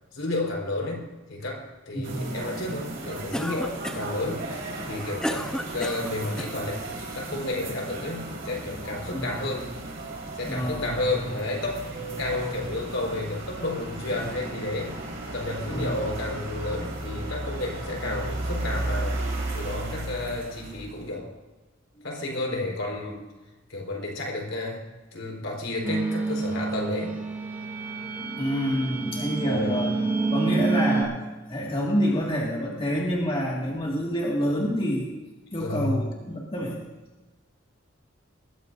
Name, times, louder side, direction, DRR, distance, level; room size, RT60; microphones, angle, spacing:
voice 1, 0.1-1.0 1.3-4.5 4.8-6.8 7.1-9.7 10.3-11.9 12.2-15.0 15.3-19.2 19.5-21.3 22.0-23.2 23.7-24.8 25.1-27.1 29.4-29.8 35.6-36.0, left 2 dB, 75° left, -1 dB, 4.3 m, -31 dB
voice 2, 1.9-2.4 9.1-9.4 10.4-10.9 15.7-16.0 28.4-29.9 30.3-31.2 31.5-35.1 35.5-36.8, equal, 30° left, -3 dB, 2.0 m, -27 dB
sound 1, 2.0-21.1, right 1 dB, 70° right, 4.5 m, -35 dB
Cough, 3.3-4.2 4.8-6.6, equal, 5° left, 0.8 m, -32 dB
sound 2, 25.8-31.0, right 3 dB, 10° right, 2.6 m, -28 dB
20.5 x 15.5 x 2.7 m, 1.2 s
head